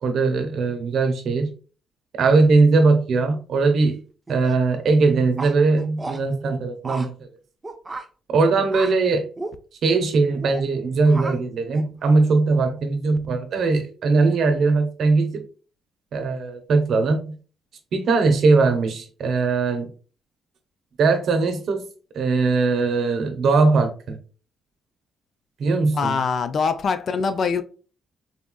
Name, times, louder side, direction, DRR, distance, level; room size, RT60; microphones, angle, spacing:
voice 1, 0.0-1.5 2.1-4.0 4.3-7.3 8.3-9.3 9.8-15.4 16.1-17.4 17.9-19.9 21.0-21.8 22.1-24.2 25.6-26.2, right 3 dB, 65° right, 0.6 m, -20 dB
sound 1, 4.3-4.5 5.4-6.2 6.8-7.1 7.6-8.1 8.7-8.9 9.4-9.5 10.3-10.6 11.1-11.4 11.7-12.2, right 2 dB, 20° right, 0.4 m, -33 dB
voice 2, 26.0-27.6, left 5 dB, 55° left, 0.3 m, -23 dB
3.7 x 2.3 x 2.2 m
cardioid pair, 90°, 0 cm